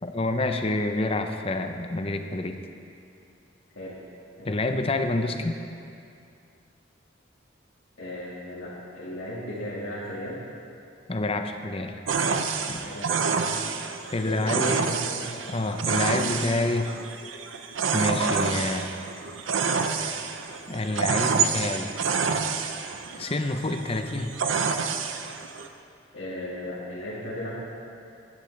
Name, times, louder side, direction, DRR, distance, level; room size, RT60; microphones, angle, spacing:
voice 1, 0.0-2.6 4.4-5.6 11.1-11.9 12.7-12.8 14.1-14.9 15.5-16.9 17.9-18.9 20.7-21.9 23.2-24.3, left 2 dB, 30° left, 6 dB, 0.6 m, -28 dB
voice 2, 8.0-10.4 12.8-13.8 14.2-15.2 26.1-27.5, left 1 dB, 75° left, -9 dB, 1.9 m, -36 dB
sound 1, 12.1-25.7, right 5 dB, 90° right, 0.7 m, -28 dB
16.0 x 10.5 x 3.3 m, 2.5 s
head